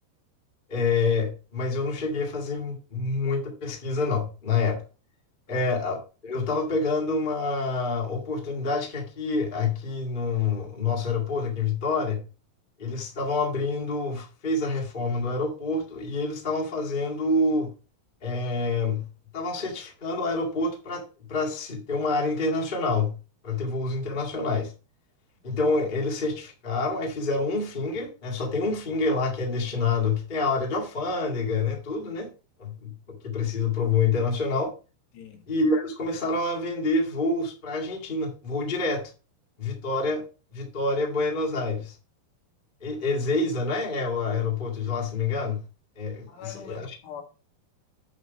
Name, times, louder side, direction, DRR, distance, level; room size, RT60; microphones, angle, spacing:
voice 1, 0.7-4.8 5.5-12.2 12.8-17.7 18.2-19.1 19.3-23.2 23.4-24.7 25.4-32.3 32.6-34.7 35.5-39.1 39.6-40.2 40.5-42.0 42.8-45.6 45.9-47.0, left 3 dB, 25° left, 1.0 m, -27 dB
voice 2, 35.1-35.5 46.3-47.2, left 8 dB, 85° left, 4.3 m, -43 dB
8.4 x 5.6 x 5.2 m
omnidirectional pair, 4.8 m